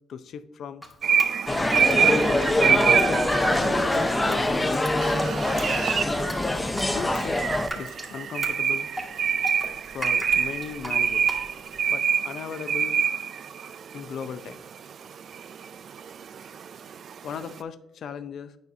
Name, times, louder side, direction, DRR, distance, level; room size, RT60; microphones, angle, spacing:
voice 1, 0.1-0.8 1.9-3.3 3.9-5.0 6.8-7.4 7.8-8.9 9.9-13.0 13.9-14.6 17.2-18.6, left 7 dB, 60° left, 12 dB, 0.5 m, -37 dB
Drip, 0.8-11.8, equal, ahead, 1.4 m, -38 dB
sound 1, 1.0-17.6, right 7 dB, 55° right, 0.3 m, -26 dB
sound 2, 1.5-7.7, left 1 dB, 15° left, 0.5 m, -24 dB
9.2 x 5.6 x 2.7 m, 0.97 s
cardioid pair, 125°, 0 cm